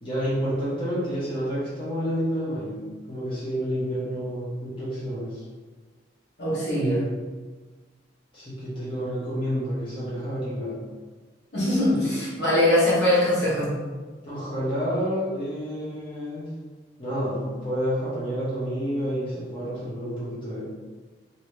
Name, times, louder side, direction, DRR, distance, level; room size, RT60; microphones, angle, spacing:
voice 1, 0.0-5.4 8.3-10.8 11.9-12.1 14.2-16.6 17.0-20.6, equal, 30° left, -9 dB, 1.0 m, -29 dB
voice 2, 6.4-7.1 11.5-13.7, left 1 dB, 65° left, -7 dB, 1.2 m, -22 dB
3.1 x 2.7 x 3.1 m, 1.4 s
head